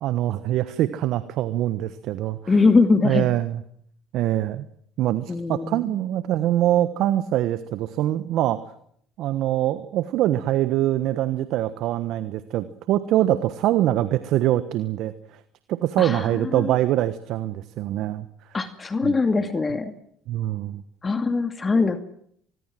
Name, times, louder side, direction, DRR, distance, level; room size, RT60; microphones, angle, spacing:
voice 1, 0.0-2.5 3.0-3.6 4.1-4.6 5.0-8.6 9.2-15.4 15.7-18.3 19.0-19.2 20.3-20.8, right 13 dB, 65° right, 14 dB, 1.2 m, -24 dB
voice 2, 2.5-3.3 5.3-5.8 16.0-16.7 18.5-19.9 21.0-22.0, left 4 dB, 25° left, 9 dB, 2.3 m, -22 dB
25.5 x 21.0 x 7.7 m, 0.67 s
hypercardioid pair, 65°, 0 cm